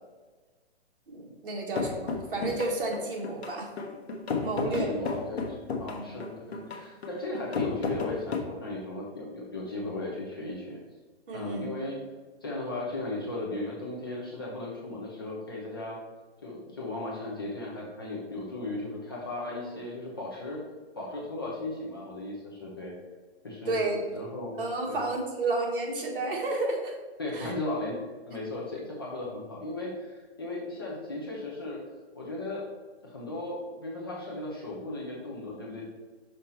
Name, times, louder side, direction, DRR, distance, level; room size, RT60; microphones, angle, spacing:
voice 1, 1.1-3.7 4.4-4.9 5.9-6.1 11.3-11.7 23.7-27.0 27.3-27.5, right 2 dB, 55° right, -1 dB, 1.8 m, -31 dB
sound 1, 1.7-8.4, left 4 dB, 70° left, 1.1 m, -33 dB
voice 2, 4.6-10.8 11.3-12.0 12.4-16.0 16.4-20.6 20.9-22.9 23.4-24.6 24.9-25.1 27.2-27.9 28.3-31.8 32.1-32.6 33.0-35.8, left 2 dB, 20° left, -3 dB, 0.6 m, -36 dB
5.7 x 5.1 x 4.3 m, 1.3 s
hypercardioid pair, 175°, 33 cm